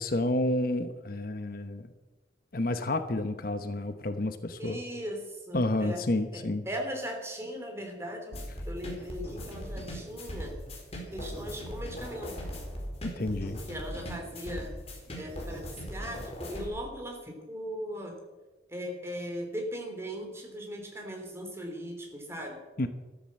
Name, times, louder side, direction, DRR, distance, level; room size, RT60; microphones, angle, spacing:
voice 1, 0.0-1.9 2.5-4.8 5.5-6.6 13.0-13.6 22.8-22.9, left 1 dB, 50° left, 9 dB, 1.0 m, -30 dB
voice 2, 4.6-6.0 6.7-8.3 8.7-10.6 11.1-12.5 13.7-14.7 15.2-18.2 18.7-22.6, equal, 15° right, 2 dB, 3.3 m, -38 dB
sound 1, 8.3-16.7, equal, 35° left, 4.5 m, -39 dB
14.0 x 13.0 x 7.6 m, 1.2 s
head